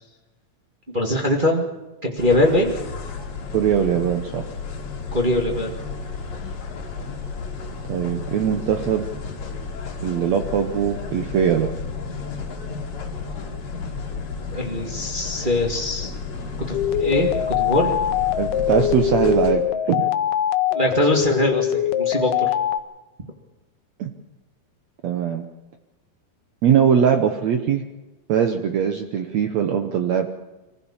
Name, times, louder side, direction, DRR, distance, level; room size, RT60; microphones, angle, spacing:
voice 1, 0.9-1.7 2.0-2.7 5.1-5.9 14.5-16.1 16.6-17.9 20.7-22.5, left 1 dB, 30° right, 0 dB, 0.9 m, -22 dB
sound 1, 2.2-19.5, left 5 dB, 45° left, 3.3 m, -32 dB
voice 2, 3.5-4.5 7.9-9.1 10.0-11.7 18.4-20.1 24.0-24.1 25.0-25.5 26.6-27.8 28.3-30.3, right 8 dB, 85° right, 6 dB, 1.5 m, -21 dB
sound 2, 16.7-22.8, left 11 dB, 80° left, 2.7 m, -22 dB
24.0 x 15.5 x 7.2 m, 1.1 s
omnidirectional pair, 4.6 m